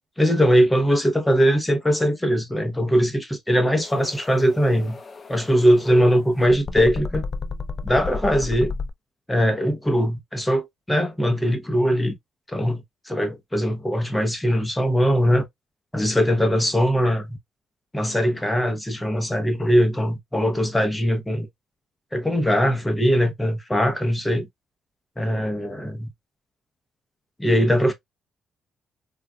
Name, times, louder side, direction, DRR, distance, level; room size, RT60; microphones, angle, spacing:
voice 1, 0.2-5.0 5.3-7.2 7.8-8.7 9.3-12.2 12.5-15.5 15.9-17.4 17.9-21.5 22.1-24.5 25.2-26.1 27.4-27.9, equal, 10° left, 0.8 m, -21 dB
sound 1, 3.8-8.9, left 4 dB, 35° left, 0.4 m, -33 dB
4.0 x 2.3 x 2.3 m
cardioid pair, 90°, 0 cm